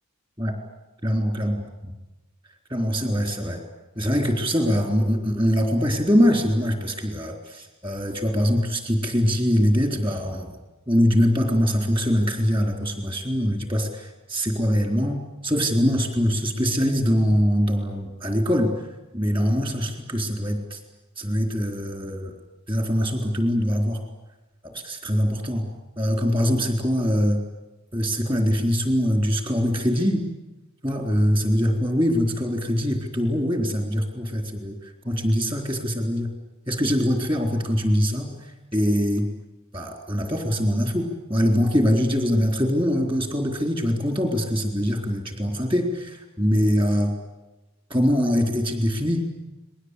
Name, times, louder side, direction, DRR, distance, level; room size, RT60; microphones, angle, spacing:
voice 1, 1.0-1.5 2.7-3.6 4.0-10.6 10.9-18.7 19.1-20.8 21.2-22.3 22.7-24.0 24.6-25.7 26.0-27.4 27.9-30.2 30.8-34.8 35.0-36.3 36.7-38.3 38.7-39.3 39.7-47.1 47.9-49.2, equal, 25° right, 3 dB, 3.9 m, -23 dB
30.0 x 22.0 x 8.3 m, 1.1 s
head